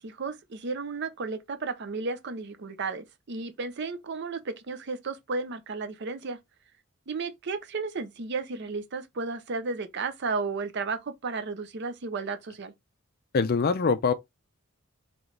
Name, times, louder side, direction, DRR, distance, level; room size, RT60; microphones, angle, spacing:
voice 1, 0.0-6.4 7.1-12.7, right 4 dB, 50° right, 0.5 m, -33 dB
voice 2, 13.3-14.1, left 5 dB, 40° left, 0.4 m, -23 dB
3.9 x 3.1 x 3.2 m
head